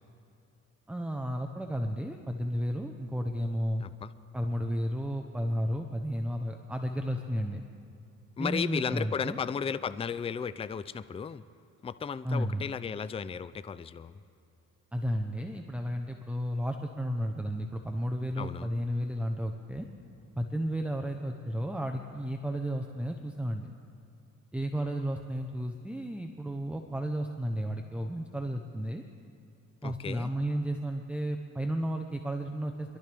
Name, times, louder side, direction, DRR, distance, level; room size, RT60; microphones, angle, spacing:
voice 1, 0.9-3.8 4.3-7.6 8.4-9.4 12.2-12.6 14.9-19.9 20.3-23.7 24.5-29.0 29.8-33.0, equal, 5° right, 3 dB, 0.7 m, -33 dB
voice 2, 3.8-4.1 8.4-11.4 11.8-14.2 18.4-18.7 29.8-30.3, left 6 dB, 20° left, 14 dB, 0.4 m, -34 dB
23.0 x 12.5 x 3.5 m, 2.6 s
cardioid pair, 90°, 30 cm